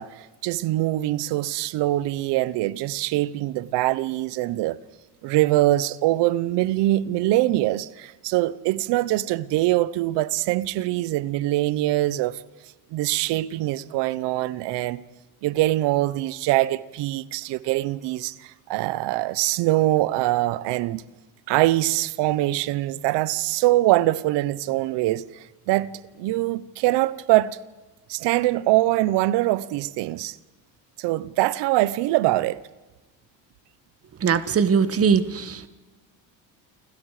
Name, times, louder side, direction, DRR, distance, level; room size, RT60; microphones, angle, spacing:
voice 1, 0.0-4.8 5.2-12.4 12.9-15.0 15.4-21.0 21.5-27.6 28.1-30.4 31.0-32.6, right 16 dB, 80° right, 1.0 m, -23 dB
voice 2, 34.2-35.7, right 6 dB, 35° right, 1.5 m, -21 dB
29.0 x 25.5 x 5.0 m
cardioid pair, 130°, 42 cm